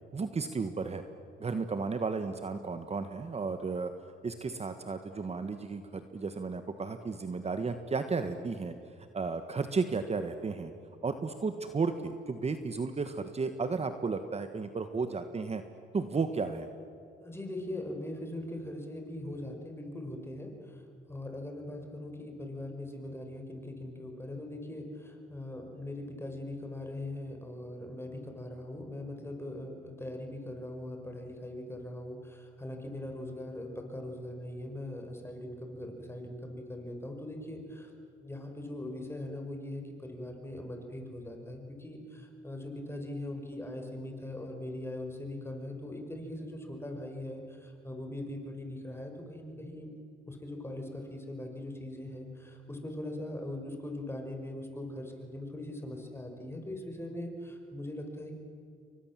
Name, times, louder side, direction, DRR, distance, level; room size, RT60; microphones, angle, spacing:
voice 1, 0.1-1.0 1.4-3.9 4.2-8.7 9.1-10.7 11.0-15.6 15.9-16.7, right 4 dB, 30° right, 8 dB, 1.6 m, -33 dB
voice 2, 17.2-20.8 21.1-37.9 38.2-49.9 50.3-58.4, left 1 dB, 10° left, 3 dB, 5.8 m, -41 dB
29.5 x 24.0 x 7.6 m, 2.5 s
cardioid pair, 90°, 20 cm